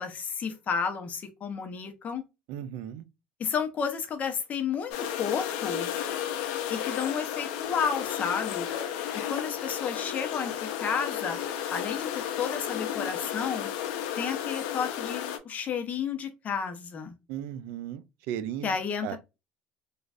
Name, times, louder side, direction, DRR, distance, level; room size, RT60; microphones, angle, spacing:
voice 1, 0.0-2.2 3.4-4.9 5.2-5.9 6.7-8.7 9.3-11.4 11.7-12.1 12.4-13.7 14.2-17.2 18.6-19.2, left 6 dB, 40° left, 0.8 m, -31 dB
voice 2, 2.5-3.0 17.3-18.7 19.0-19.2, right 10 dB, 75° right, 0.4 m, -36 dB
sound 1, 4.9-15.4, left 10 dB, 85° left, 0.5 m, -33 dB
3.2 x 2.4 x 2.4 m
supercardioid pair, 105°, 4 cm